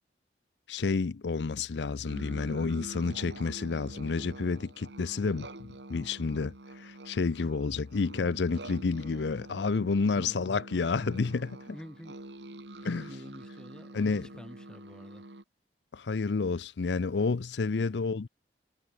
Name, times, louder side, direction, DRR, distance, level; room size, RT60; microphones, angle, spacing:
voice 1, 0.7-11.6 12.8-13.1 13.9-14.3 15.9-18.3, left 4 dB, 75° left, 0.6 m, -30 dB
sound 1, 2.1-15.4, right 1 dB, 80° right, 2.8 m, -46 dB
voice 2, 10.0-10.4 11.7-12.2 12.8-15.2, equal, 5° left, 4.2 m, -49 dB
head